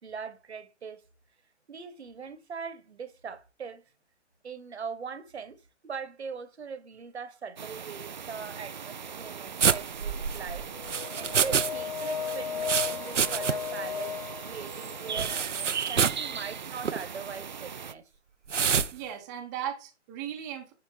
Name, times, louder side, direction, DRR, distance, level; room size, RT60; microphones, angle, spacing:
voice 1, 0.0-1.0 1.7-3.8 4.4-10.7 11.2-18.1, right 6 dB, 65° right, 1.5 m, -41 dB
sound 1, 7.6-17.9, right 7 dB, 40° right, 0.4 m, -39 dB
sound 2, 9.6-11.7 12.0-13.8 14.0-14.1 15.2-16.3 16.8-17.0 18.5-18.9, right 6 dB, 80° right, 0.8 m, -27 dB
sound 3, 10.7-15.4, left 8 dB, 30° left, 1.1 m, -36 dB
voice 2, 18.9-20.7, right 10 dB, 15° right, 1.0 m, -37 dB
10.0 x 3.7 x 4.6 m
figure-of-eight pair, 150°, 36 cm